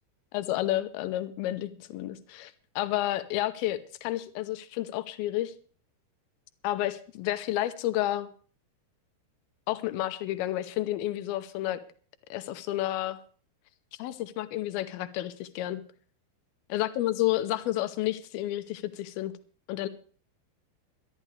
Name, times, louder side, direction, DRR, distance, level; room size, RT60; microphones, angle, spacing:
voice 1, 0.3-5.5 6.6-8.3 9.7-11.8 12.3-13.2 14.0-15.8 16.7-19.3 19.7-19.9, left 14 dB, 80° left, 12 dB, 2.2 m, -30 dB
21.5 x 12.0 x 3.3 m, 0.42 s
omnidirectional pair, 5.2 m